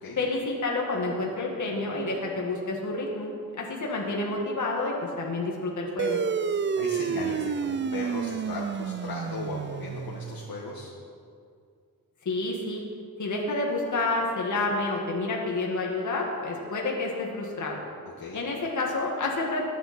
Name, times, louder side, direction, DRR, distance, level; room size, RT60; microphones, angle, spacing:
voice 1, 0.2-6.2 12.3-12.8 13.2-17.8 18.3-19.6, left 2 dB, 55° left, -2 dB, 2.0 m, -29 dB
sound 1, 6.0-10.9, right 6 dB, 35° right, 0.4 m, -30 dB
voice 2, 6.8-10.9 18.2-18.4, left 2 dB, 90° left, -4 dB, 1.8 m, -37 dB
21.5 x 9.2 x 4.4 m, 2.3 s
wide cardioid pair, 180°, 35 cm